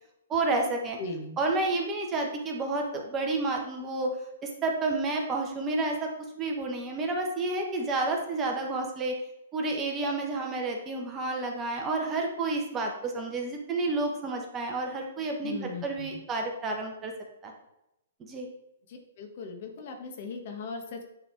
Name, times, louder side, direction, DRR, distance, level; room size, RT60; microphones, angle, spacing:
voice 1, 0.3-1.0 1.4-4.1 4.4-6.1 6.4-9.1 9.5-17.1 17.4-17.5 18.2-18.5, right 2 dB, 20° right, 1 dB, 1.2 m, -30 dB
voice 2, 1.0-1.4 15.4-16.2 18.9-21.0, left 3 dB, 50° left, 4 dB, 1.4 m, -38 dB
9.3 x 3.9 x 4.6 m, 0.86 s
hypercardioid pair, 150°, 0 cm